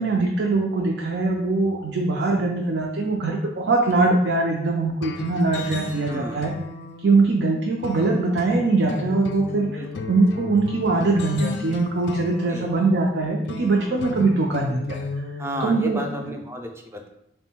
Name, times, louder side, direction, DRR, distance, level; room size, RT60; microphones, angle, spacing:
voice 1, 0.0-6.5 7.0-9.8 10.1-15.0 15.6-16.0, right 3 dB, 75° right, 0 dB, 0.5 m, -22 dB
sound 1, 5.0-16.3, left 3 dB, 80° left, 0.4 m, -34 dB
voice 2, 6.1-6.5 9.7-10.0 12.5-12.7 15.4-17.1, equal, 15° right, 3 dB, 0.4 m, -32 dB
3.5 x 2.2 x 4.3 m, 0.80 s
head